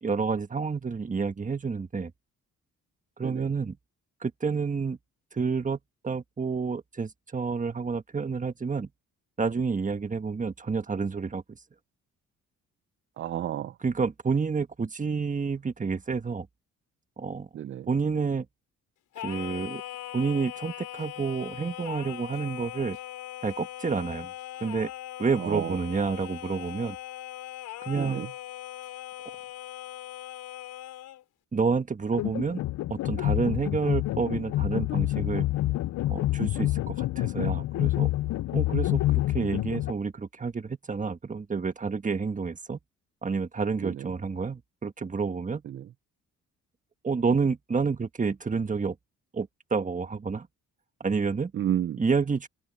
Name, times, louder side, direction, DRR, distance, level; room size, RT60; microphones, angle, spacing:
voice 1, 0.0-2.1 3.2-3.8 4.2-5.0 5.3-8.9 9.4-11.4 13.8-16.5 17.2-17.5 17.9-18.5 19.2-19.8 20.1-23.0 23.4-24.3 24.6-24.9 25.2-27.0 27.8-28.2 31.5-32.6 32.9-35.4 36.1-38.1 38.5-42.8 43.2-45.6 47.0-48.9 49.3-50.5 51.0-51.5 52.0-52.5, right 5 dB, 25° right, 1.5 m, -29 dB
voice 2, 13.2-13.7 17.5-17.9 25.4-25.8 27.9-28.3 43.8-44.1 45.7-45.9 51.5-52.0, right 10 dB, 40° right, 0.5 m, -31 dB
Singing, 19.1-31.2, left 13 dB, 85° left, 4.4 m, -40 dB
sound 1, 32.1-39.9, left 16 dB, 65° left, 0.5 m, -27 dB
cardioid pair, 90°, 30 cm